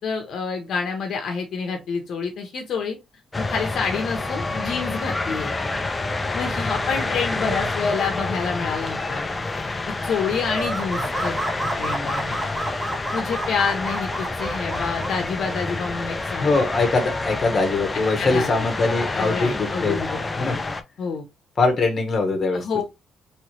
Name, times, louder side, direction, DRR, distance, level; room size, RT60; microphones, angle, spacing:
voice 1, 0.0-3.0 3.3-5.6 6.3-9.2 9.9-11.4 11.8-12.4 13.1-16.6 18.2-18.5 19.1-20.6 21.0-21.3 22.5-22.8, left 5 dB, 55° left, 0.7 m, -28 dB
sound 1, 3.3-20.8, left 3 dB, 15° left, 0.4 m, -28 dB
sound 2, 10.4-15.2, right 1 dB, 15° right, 0.7 m, -30 dB
voice 2, 16.4-20.0 20.4-20.6 21.6-22.7, left 3 dB, 30° left, 0.9 m, -22 dB
3.1 x 3.0 x 3.0 m
cardioid pair, 165°, 0 cm